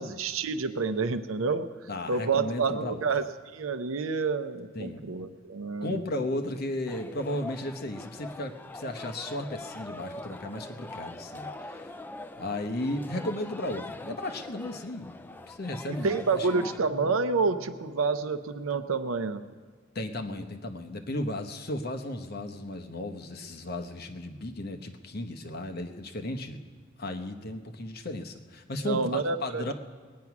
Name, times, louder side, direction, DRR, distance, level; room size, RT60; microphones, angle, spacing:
voice 1, 0.0-1.7 2.1-3.2 3.5-6.0 16.0-19.4 28.8-29.7, right 4 dB, 90° right, 10 dB, 0.6 m, -28 dB
voice 2, 1.9-3.0 4.7-5.1 5.8-11.9 12.4-16.7 19.9-26.6 27.0-29.7, left 1 dB, 50° left, 5 dB, 1.0 m, -35 dB
sound 1, 6.9-16.8, left 2 dB, 10° left, 0.3 m, -43 dB
sound 2, 16.8-19.8, equal, 55° right, 1.9 m, -48 dB
20.5 x 9.5 x 6.0 m, 1.5 s
head